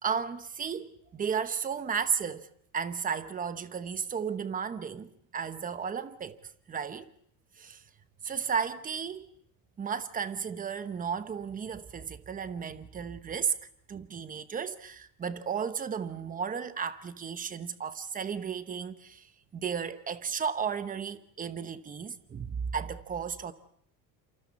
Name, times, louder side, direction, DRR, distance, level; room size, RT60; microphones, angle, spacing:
voice 1, 0.0-2.5 2.7-6.4 6.7-7.1 7.6-7.8 8.2-9.3 9.8-13.5 13.9-19.3 19.5-23.5, right 6 dB, 20° right, 0.9 m, -34 dB
28.0 x 27.5 x 4.2 m
cardioid pair, 160°, 38 cm